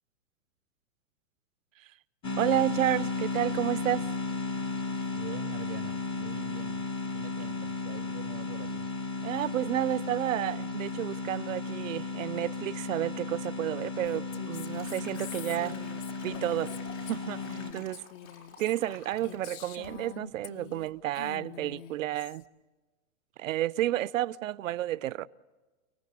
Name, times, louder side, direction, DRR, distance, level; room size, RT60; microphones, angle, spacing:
sound 1, 2.2-17.7, left 4 dB, 15° left, 0.8 m, -34 dB
voice 1, 2.4-4.1 9.2-15.8 16.2-16.7 17.1-18.0 18.6-22.4 23.4-25.3, right 14 dB, 70° right, 0.7 m, -31 dB
voice 2, 5.1-6.9 7.1-8.9 20.3-20.4 23.3-23.5, right 11 dB, 20° right, 0.7 m, -46 dB
Liquid, 14.0-19.5 19.8-20.1 20.4-20.8, left 5 dB, 80° left, 5.7 m, -51 dB
Female speech woman speaking, 14.0-20.9 21.1-22.4, left 10 dB, 40° left, 0.9 m, -46 dB
30.0 x 18.5 x 8.4 m
hypercardioid pair, 145°, 40 cm